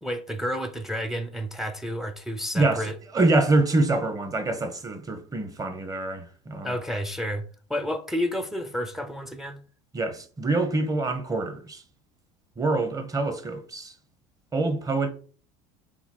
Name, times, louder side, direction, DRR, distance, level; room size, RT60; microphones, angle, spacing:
voice 1, 0.0-2.9 6.6-7.4 7.7-9.6, equal, ahead, 0.6 m, -30 dB
voice 2, 2.5-2.8 3.1-6.7 9.9-11.8 12.6-13.9 14.5-15.1, right 2 dB, 20° right, 1.0 m, -25 dB
4.2 x 3.0 x 4.1 m
supercardioid pair, 95°, 17 cm